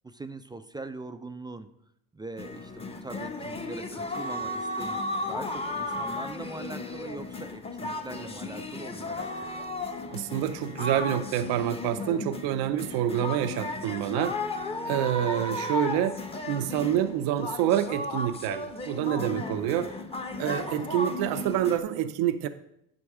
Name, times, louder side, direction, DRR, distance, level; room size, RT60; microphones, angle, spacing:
voice 1, 0.0-1.7 2.1-5.0 5.3-9.3 19.4-19.9, right 3 dB, 10° right, 10 dB, 0.4 m, -42 dB
sound 1, 2.4-21.8, left 2 dB, 15° left, 0.8 m, -35 dB
voice 2, 10.1-14.5 14.8-19.9 20.4-22.5, right 11 dB, 70° right, 11 dB, 0.6 m, -27 dB
9.8 x 5.2 x 4.8 m, 0.79 s
supercardioid pair, 95°, 40 cm